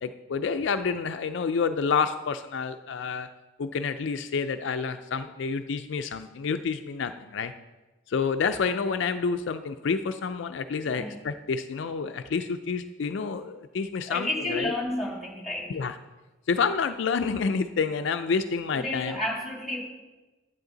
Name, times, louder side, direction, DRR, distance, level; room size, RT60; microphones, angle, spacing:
voice 1, 0.0-3.3 3.6-7.5 8.1-14.7 15.7-15.9 16.5-19.2, left 5 dB, 65° left, 8 dB, 0.4 m, -28 dB
voice 2, 10.8-11.2 14.1-15.8 18.7-19.8, left 1 dB, ahead, -3 dB, 2.5 m, -31 dB
10.5 x 8.7 x 3.9 m, 1.1 s
head